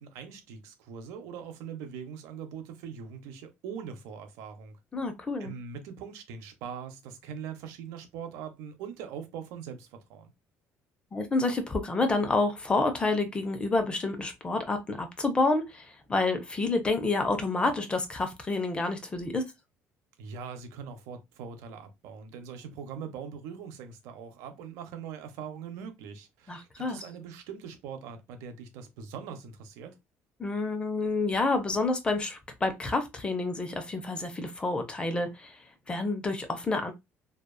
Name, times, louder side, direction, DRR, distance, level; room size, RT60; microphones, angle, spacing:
voice 1, 0.0-4.8 5.4-10.3 20.2-30.0, right 7 dB, 90° right, 0.6 m, -42 dB
voice 2, 4.9-5.5 11.1-19.4 26.5-27.0 30.4-35.6 35.9-36.9, left 3 dB, 20° left, 0.5 m, -29 dB
2.8 x 2.3 x 2.2 m
cardioid pair, 135°, 5 cm